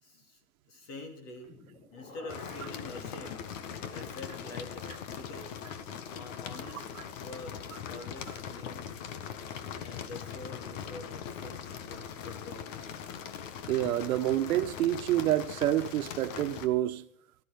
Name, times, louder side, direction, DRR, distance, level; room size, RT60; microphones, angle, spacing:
voice 1, 0.0-1.5 1.9-3.5 3.9-5.6 6.1-6.9 7.2-9.0 9.8-12.8, left 2 dB, 35° left, 3.0 m, -46 dB
sound 1, 1.4-7.4 7.7-7.8, left 2 dB, 85° left, 7.5 m, -53 dB
sound 2, 2.3-16.7, left 8 dB, 60° left, 1.6 m, -41 dB
voice 2, 13.7-17.0, right 13 dB, 70° right, 1.3 m, -28 dB
15.5 x 13.0 x 5.3 m
supercardioid pair, 165°, 44 cm